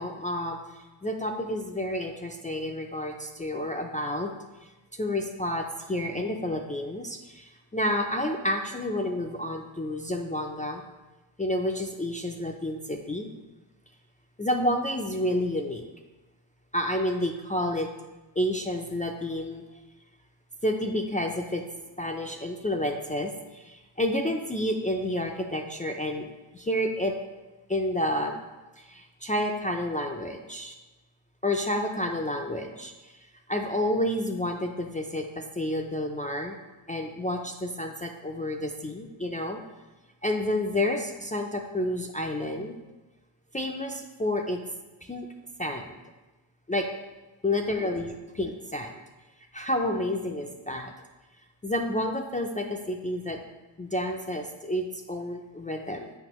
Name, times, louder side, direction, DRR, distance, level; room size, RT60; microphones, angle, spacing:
voice 1, 0.0-4.3 4.6-10.8 11.4-13.3 14.4-15.8 16.7-17.9 18.4-19.6 20.6-21.6 22.0-27.1 27.7-28.4 28.8-30.7 31.4-33.1 33.5-36.6 36.9-39.6 40.2-42.8 43.5-44.6 45.0-45.3 45.6-46.0 46.7-46.9 47.4-49.0 49.5-50.9 51.6-53.4 53.8-56.1, left 1 dB, 20° left, 2 dB, 0.3 m, -30 dB
7.7 x 5.2 x 3.0 m, 1.1 s
wide cardioid pair, 115°, 48 cm